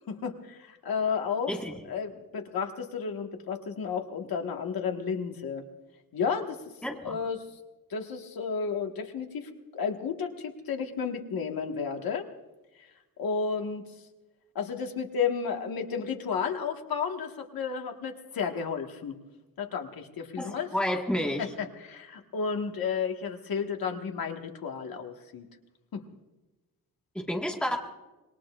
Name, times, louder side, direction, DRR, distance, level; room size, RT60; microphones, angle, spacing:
voice 1, 0.0-5.6 6.1-6.6 7.0-7.4 7.9-12.3 13.2-13.9 14.6-19.2 19.6-20.7 21.4-25.5 25.9-26.0, left 6 dB, 75° left, 3 dB, 1.7 m, -32 dB
voice 2, 6.8-7.2 20.4-21.5 27.1-27.8, left 1 dB, 5° left, 0 dB, 1.6 m, -30 dB
26.0 x 21.5 x 2.5 m, 1.1 s
wide cardioid pair, 175°, 36 cm